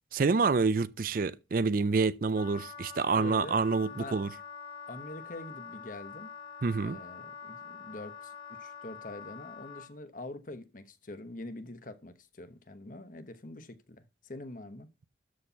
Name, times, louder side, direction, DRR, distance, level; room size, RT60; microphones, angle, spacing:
voice 1, 0.1-4.3 6.6-7.0, right 4 dB, 50° right, 0.4 m, -27 dB
Wind instrument woodwind instrument, 2.3-9.9, left 6 dB, 30° left, 1.4 m, -46 dB
voice 2, 3.2-4.2 4.9-6.3 6.8-14.9, left 2 dB, 50° left, 1.0 m, -45 dB
13.0 x 4.3 x 5.6 m
head